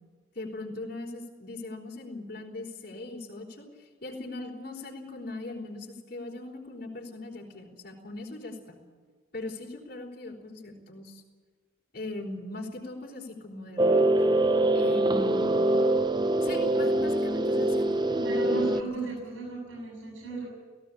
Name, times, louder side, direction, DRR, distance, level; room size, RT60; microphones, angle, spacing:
voice 1, 0.3-8.8 9.3-11.2 11.9-14.1 14.7-15.7 16.4-19.1, left 2 dB, 45° left, -2 dB, 4.5 m, -40 dB
sound 1, 13.8-18.8, right 1 dB, 20° right, 0.7 m, -24 dB
voice 2, 18.2-20.5, right 3 dB, 65° right, -2 dB, 7.8 m, -35 dB
18.5 x 16.5 x 8.7 m, 1.5 s
head